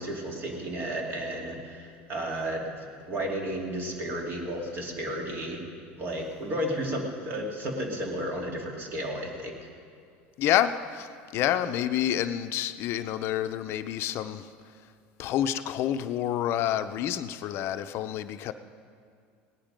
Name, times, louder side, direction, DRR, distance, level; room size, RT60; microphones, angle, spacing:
voice 1, 0.0-5.6 6.0-9.5, equal, 50° right, 0 dB, 2.8 m, -33 dB
voice 2, 10.4-14.5 15.2-18.5, left 11 dB, 55° left, 10 dB, 0.6 m, -28 dB
18.0 x 10.5 x 5.1 m, 2.2 s
supercardioid pair, 105°, 5 cm